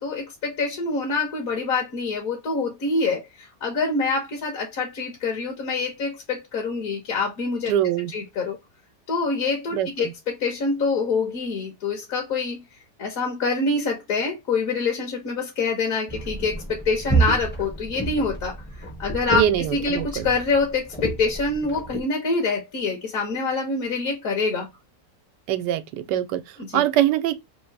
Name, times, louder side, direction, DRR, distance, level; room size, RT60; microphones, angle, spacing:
voice 1, 0.0-7.7 8.1-8.6 9.1-12.6 13.0-19.4 19.7-24.7 26.6-26.8, left 4 dB, 60° left, 1.3 m, -26 dB
voice 2, 7.7-8.1 9.7-10.1 19.3-20.3 25.5-27.3, right 11 dB, 90° right, 1.2 m, -23 dB
sound 1, 16.1-22.0, right 3 dB, 15° left, 0.4 m, -29 dB
3.6 x 2.6 x 4.5 m
omnidirectional pair, 1.8 m